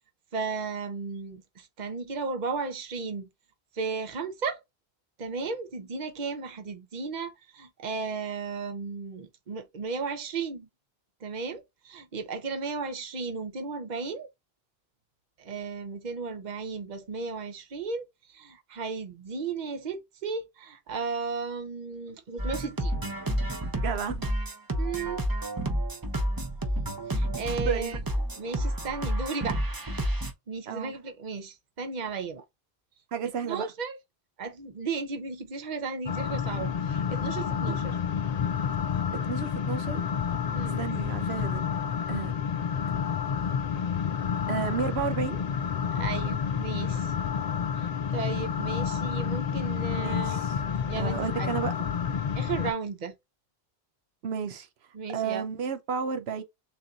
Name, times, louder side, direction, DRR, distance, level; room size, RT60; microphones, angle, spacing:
voice 1, 0.3-3.3 3.7-4.6 5.2-10.7 11.2-14.3 15.4-22.9 24.8-25.2 27.1-28.0 28.4-29.6 30.5-32.4 33.4-34.0 34.4-38.0 40.5-40.8 45.9-47.1 47.8-50.5 50.9-51.5 52.3-53.1 54.9-55.4, right 4 dB, 45° right, 0.9 m, -35 dB
sound 1, 22.4-30.3, right 1 dB, 25° right, 0.7 m, -30 dB
voice 2, 23.8-24.3 27.6-28.0 30.7-30.9 33.1-33.7 37.7-37.8 39.3-40.0 40.8-41.6 42.1-42.3 44.5-45.4 49.9-50.6 50.9-51.9 54.2-54.7 55.1-56.4, right 6 dB, 85° right, 1.0 m, -32 dB
sound 2, 36.1-52.7, left 7 dB, 50° left, 0.5 m, -29 dB
6.8 x 2.8 x 2.4 m
omnidirectional pair, 1.0 m